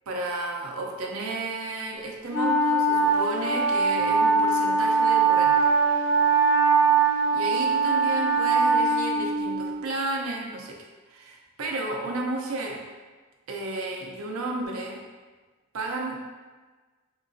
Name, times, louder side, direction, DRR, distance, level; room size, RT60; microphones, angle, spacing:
voice 1, 0.1-5.6 6.9-12.8 13.5-15.0 15.7-16.2, right 2 dB, 80° right, 0 dB, 0.5 m, -33 dB
Wind instrument woodwind instrument, 2.3-9.8, right 4 dB, 70° left, 0.6 m, -22 dB
3.8 x 2.4 x 2.5 m, 1.3 s
head